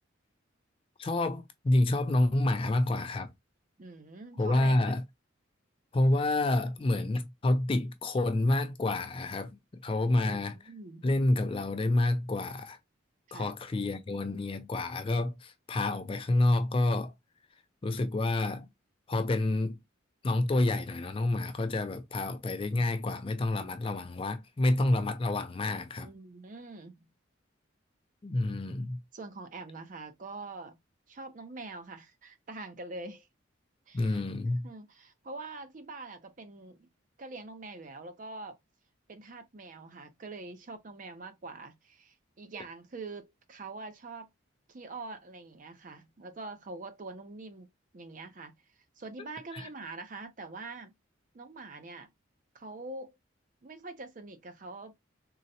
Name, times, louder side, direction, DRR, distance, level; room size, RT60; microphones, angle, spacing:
voice 1, 1.0-3.3 4.4-5.0 5.9-10.6 11.0-12.8 13.3-17.1 17.8-18.7 19.1-19.8 20.2-26.1 28.2-29.0 33.9-34.7 49.5-49.7, left 2 dB, 25° left, 0.3 m, -28 dB
voice 2, 3.8-4.9 10.0-11.1 13.3-13.5 26.0-27.1 29.1-30.8 31.1-33.3 33.9-34.2 34.6-36.9 37.2-38.6 39.1-44.3 44.7-48.5 49.0-50.9 51.3-52.1 52.5-53.1 53.6-55.0, right 3 dB, 40° right, 0.5 m, -44 dB
3.8 x 2.0 x 2.7 m
head